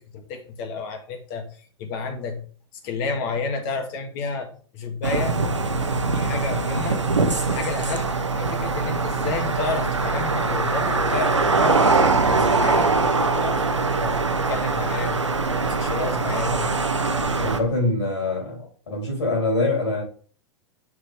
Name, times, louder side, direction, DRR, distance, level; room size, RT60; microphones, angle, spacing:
voice 1, 0.1-1.5 1.8-2.4 2.8-5.3 6.0-7.0 7.4-8.1 8.4-11.9 12.2-15.2 15.6-16.7, left 4 dB, 50° left, 6 dB, 1.7 m, -31 dB
sound 1, 5.0-17.6, right 3 dB, 90° right, 0.8 m, -22 dB
voice 2, 17.4-20.0, left 2 dB, 80° left, -2 dB, 3.5 m, -24 dB
6.3 x 6.2 x 3.5 m, 0.43 s
figure-of-eight pair, 95°, 15 cm